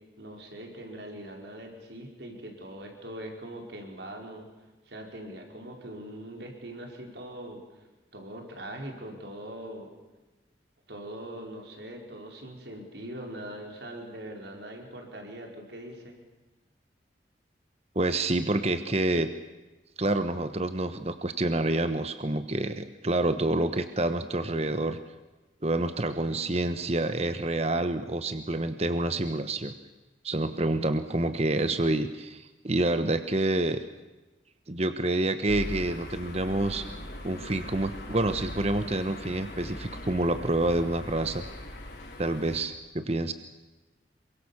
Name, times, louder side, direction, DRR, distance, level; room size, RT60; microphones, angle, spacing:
voice 1, 0.2-4.5 4.8-7.6 8.1-9.9 10.9-16.2, right 1 dB, 65° right, 2 dB, 5.0 m, -42 dB
voice 2, 17.9-19.3 20.0-25.0 25.6-29.7 30.2-33.8 34.7-36.9 37.2-41.5 42.2-43.3, right 2 dB, 35° right, 10 dB, 1.1 m, -28 dB
sound 1, 35.5-42.6, left 1 dB, 60° left, 6.2 m, -40 dB
27.5 x 24.0 x 7.2 m, 1.1 s
head